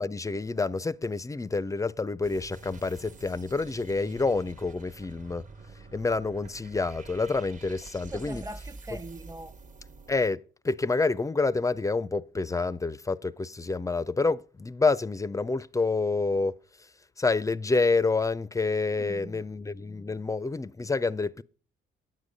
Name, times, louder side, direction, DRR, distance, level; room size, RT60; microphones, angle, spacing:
voice 1, 0.0-5.4 5.9-8.4 10.1-16.5 17.2-21.4, left 3 dB, 15° left, 0.4 m, -28 dB
sound 1, 2.2-10.3, right 3 dB, 40° right, 1.2 m, -47 dB
voice 2, 7.9-9.5 18.9-19.4 20.1-20.2, right 2 dB, 15° right, 0.8 m, -42 dB
9.2 x 8.2 x 5.2 m
cardioid pair, 90°, 20 cm